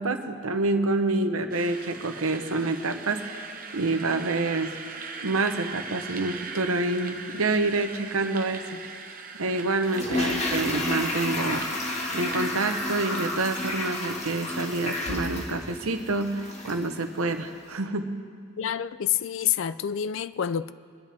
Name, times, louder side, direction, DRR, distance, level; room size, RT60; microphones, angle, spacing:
voice 1, 0.0-3.4 3.7-4.8 5.2-8.9 9.4-11.6 12.1-18.1, right 2 dB, 75° right, 1.0 m, -27 dB
sound 1, 1.5-12.7, right 5 dB, 40° right, 1.0 m, -41 dB
Toilet flush, 9.8-16.9 17.2-17.3, left 1 dB, 30° left, 1.8 m, -31 dB
voice 2, 18.6-20.7, left 9 dB, 60° left, 0.4 m, -27 dB
25.0 x 10.5 x 3.5 m
head